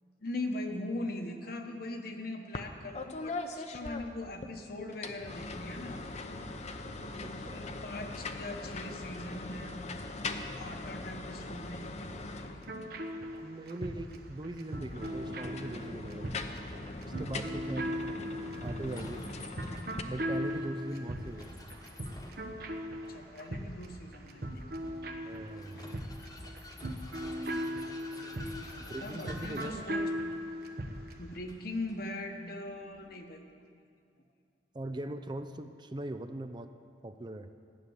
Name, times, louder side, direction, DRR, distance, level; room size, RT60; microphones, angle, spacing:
voice 1, 0.2-6.0 7.1-12.5 17.9-18.0 23.1-24.7 27.1-27.3 27.6-30.0 31.2-33.6, left 2 dB, 60° left, 4 dB, 1.2 m, -41 dB
sound 1, 2.5-2.7 3.0-4.5 4.9-13.0 14.7-20.0, left 3 dB, 40° left, 0.7 m, -41 dB
voice 2, 7.2-7.6 13.4-16.4 17.0-17.9 18.6-19.3 20.1-21.7 25.3-25.9 28.9-29.9 34.7-36.7 37.0-37.5, right 1 dB, 25° right, 9 dB, 0.5 m, -40 dB
sound 2, 12.6-31.2, equal, 60° right, 1.1 m, -38 dB
Vehicle, 15.0-33.1, left 1 dB, 20° left, 1.2 m, -52 dB
14.0 x 6.8 x 9.5 m, 2.4 s
head